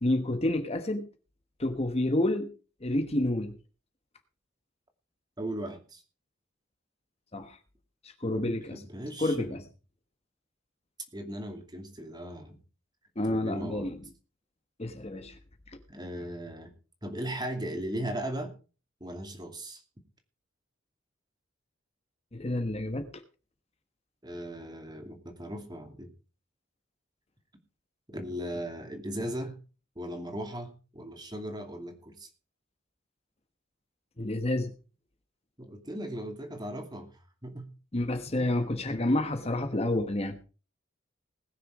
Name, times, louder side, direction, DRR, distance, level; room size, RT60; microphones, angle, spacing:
voice 1, 0.0-1.1 1.6-2.5 2.8-3.5 7.3-7.6 8.0-8.8 9.2-9.6 13.2-14.0 14.8-15.3 22.3-23.1 34.2-34.7 37.9-40.4, left 1 dB, 30° left, 1.3 m, -29 dB
voice 2, 5.4-6.0 8.3-9.5 11.1-12.6 13.3-13.9 15.9-16.7 17.0-18.5 19.0-19.8 24.2-26.1 28.1-29.6 30.0-32.3 35.6-37.1 37.4-37.7 38.4-38.5, right 1 dB, 20° right, 2.5 m, -37 dB
20.0 x 6.8 x 4.9 m
head